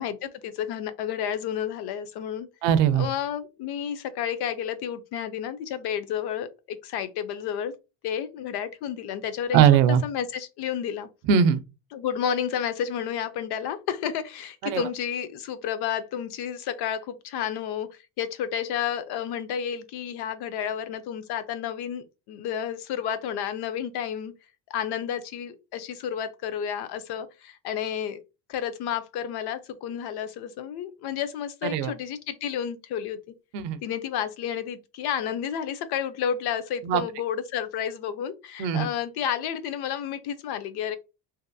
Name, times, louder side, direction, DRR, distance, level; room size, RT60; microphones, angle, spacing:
voice 1, 0.0-2.5 3.0-7.7 8.0-9.6 10.0-11.1 11.9-24.3 24.7-28.2 28.5-33.2 33.8-41.0, left 9 dB, 65° left, 0.6 m, -31 dB
voice 2, 2.6-3.1 9.5-10.0 11.3-11.6 14.6-14.8 31.6-31.9 33.5-33.8 36.8-37.0 38.6-38.9, right 8 dB, 80° right, 0.6 m, -20 dB
2.7 x 2.5 x 2.3 m
supercardioid pair, 95°, 43 cm